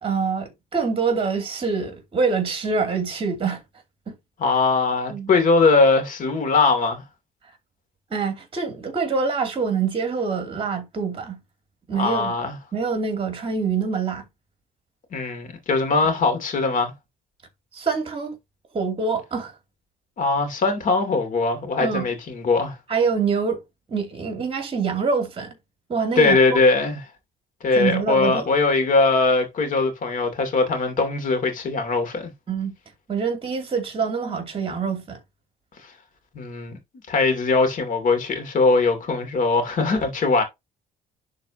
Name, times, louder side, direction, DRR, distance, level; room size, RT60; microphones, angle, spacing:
voice 1, 0.0-3.6 4.1-4.2 5.1-5.3 8.1-11.4 11.9-12.3 12.7-14.2 17.7-18.4 18.7-19.5 21.8-22.1 22.9-23.6 23.9-25.5 25.9-26.4 27.8-28.4 32.5-32.7 33.1-35.2, right 5 dB, 35° right, 2.6 m, -25 dB
voice 2, 4.4-7.0 11.9-12.5 15.1-16.9 20.2-22.8 26.2-27.0 27.6-32.3 36.3-36.8 37.1-40.4, left 3 dB, 50° left, 2.5 m, -21 dB
11.0 x 4.0 x 2.8 m
cardioid pair, 110°, 17 cm